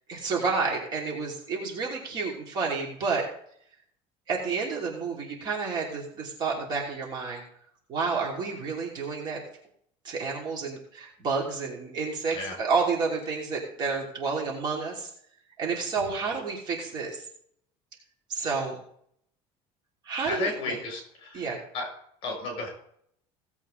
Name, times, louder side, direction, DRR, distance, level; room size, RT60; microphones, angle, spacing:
voice 1, 0.1-3.2 4.3-7.4 7.9-9.4 10.0-15.1 15.6-17.2 18.3-18.8 20.0-20.8 21.3-21.6, right 4 dB, 35° right, -1 dB, 2.9 m, -30 dB
voice 2, 20.3-21.9 22.2-22.7, left 3 dB, 45° left, 1 dB, 6.0 m, -33 dB
17.0 x 8.1 x 3.8 m, 0.67 s
cardioid pair, 170°, 12 cm